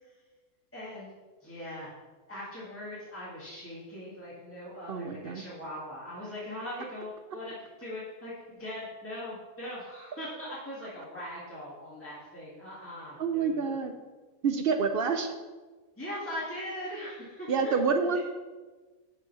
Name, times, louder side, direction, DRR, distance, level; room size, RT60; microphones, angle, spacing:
voice 1, 0.7-1.1 1.4-1.9 2.3-13.8 16.0-17.8 18.1-18.2, left 1 dB, 10° left, -8 dB, 1.6 m, -40 dB
voice 2, 4.9-5.4 13.2-13.9 14.4-15.4 17.5-18.2, right 5 dB, 60° right, 6 dB, 0.6 m, -27 dB
6.4 x 5.3 x 5.5 m, 1.3 s
omnidirectional pair, 1.5 m